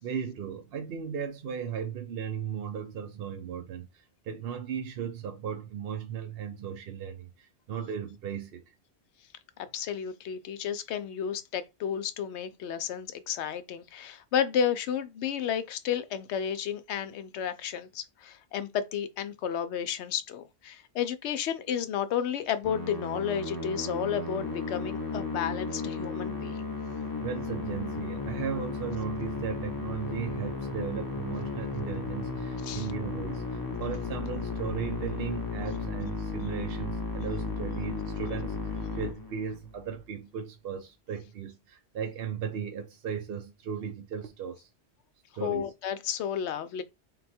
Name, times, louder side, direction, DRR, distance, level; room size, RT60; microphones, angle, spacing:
voice 1, 0.0-8.7 27.2-44.7 45.3-45.7, right 7 dB, 65° right, 0.8 m, -36 dB
voice 2, 9.7-26.6 32.6-32.9 45.4-46.8, left 8 dB, 80° left, 0.9 m, -32 dB
Musical instrument, 22.6-39.8, left 3 dB, 20° left, 0.7 m, -35 dB
3.9 x 2.3 x 4.1 m
omnidirectional pair, 1.2 m